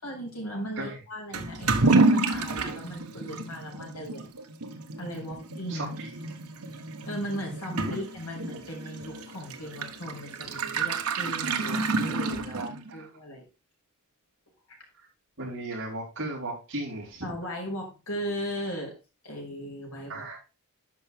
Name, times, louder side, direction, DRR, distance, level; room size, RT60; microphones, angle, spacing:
voice 1, 0.0-4.3 5.0-5.9 7.1-13.4 17.2-18.9 19.2-20.4, equal, 75° left, -2 dB, 5.5 m, -37 dB
Toilet flush / Liquid, 1.3-13.0, right 3 dB, 80° right, 1.2 m, -29 dB
voice 2, 5.7-6.1 7.9-8.0 12.5-13.1 15.0-15.1 15.4-17.3 20.1-20.4, right 2 dB, 55° right, -9 dB, 4.1 m, -36 dB
10.5 x 5.9 x 3.6 m, 0.31 s
head